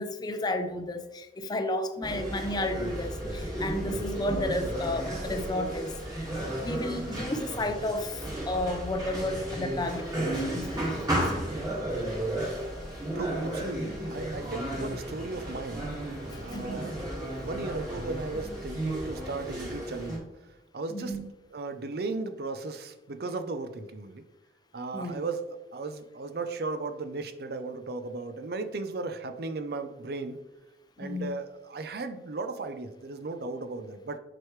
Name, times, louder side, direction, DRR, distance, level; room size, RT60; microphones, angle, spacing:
voice 1, 0.0-5.9 6.6-11.2 16.3-16.9 20.9-21.3 24.9-25.2 31.0-31.3, left 1 dB, 25° left, 0.5 m, -32 dB
sound 1, 2.0-20.2, right 1 dB, 20° right, 1.7 m, -33 dB
voice 2, 13.1-15.9 16.4-17.0 17.3-20.2 20.7-21.2 21.5-24.2 24.7-30.4 31.0-34.2, right 3 dB, 60° right, 0.5 m, -36 dB
7.6 x 4.9 x 3.1 m
head